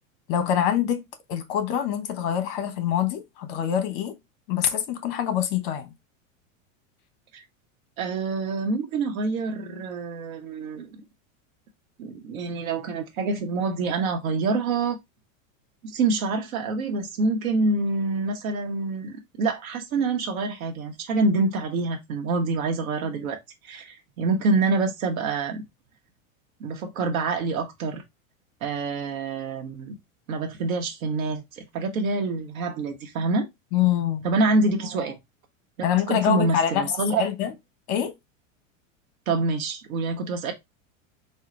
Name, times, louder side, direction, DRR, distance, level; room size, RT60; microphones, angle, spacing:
voice 1, 0.3-1.0 1.3-4.2 4.5-5.9 33.7-34.2 35.8-37.5 37.9-38.1, left 9 dB, 50° left, 1.0 m, -25 dB
voice 2, 8.0-11.0 12.0-15.0 15.8-25.6 26.6-28.0 28.6-30.0 30.3-33.5 34.2-35.2 36.1-37.2 39.3-40.5, right 3 dB, 90° right, 1.0 m, -26 dB
4.3 x 2.1 x 3.7 m
supercardioid pair, 140°, 40 cm